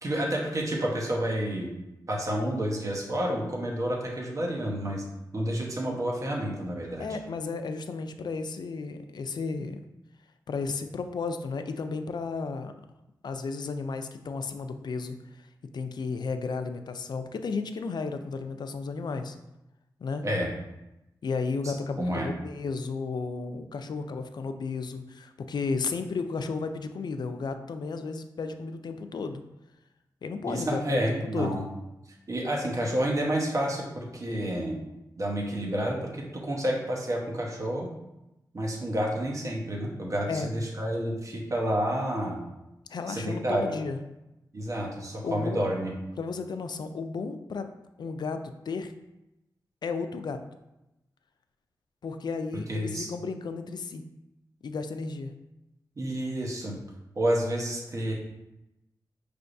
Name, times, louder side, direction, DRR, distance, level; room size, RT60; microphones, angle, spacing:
voice 1, 0.0-1.7 2.1-5.0 5.3-7.0 20.2-20.5 21.6-22.3 30.5-31.6 32.3-34.8 35.2-37.9 38.5-42.4 43.1-43.7 44.5-45.9 52.7-53.1 56.0-56.8 57.1-58.1, right 1 dB, 45° right, -1 dB, 1.0 m, -29 dB
voice 2, 7.0-9.8 10.5-12.7 13.2-15.5 15.7-19.4 20.0-20.2 21.2-29.4 30.2-31.0 31.3-31.6 40.3-40.6 42.9-44.0 45.2-45.7 46.2-47.7 48.0-48.4 48.7-48.9 49.8-50.4 52.0-54.0 54.6-55.3, left 4 dB, 65° left, 8 dB, 0.4 m, -33 dB
5.4 x 3.3 x 2.6 m, 0.93 s
cardioid pair, 70°, 8 cm